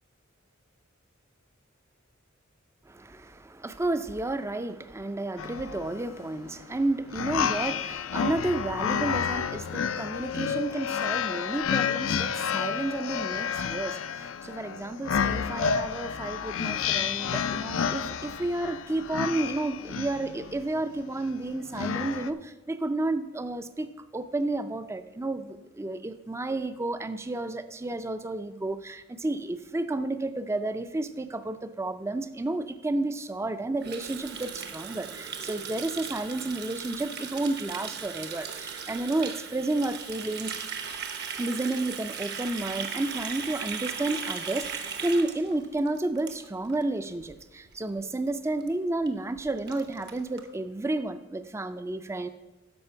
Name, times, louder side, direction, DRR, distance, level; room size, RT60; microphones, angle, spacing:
voice 1, 2.9-40.5 41.4-52.3, right 2 dB, 15° right, 11 dB, 0.4 m, -31 dB
sound 1, 5.4-22.3, left 7 dB, 70° left, 0.4 m, -30 dB
Water tap faucet, 33.8-46.8 47.1-47.3 47.7-48.0 48.3-48.4 48.6-48.7 49.1-49.2 49.4-50.4, right 6 dB, 55° right, 0.9 m, -37 dB
12.5 x 5.1 x 5.7 m, 1.1 s
head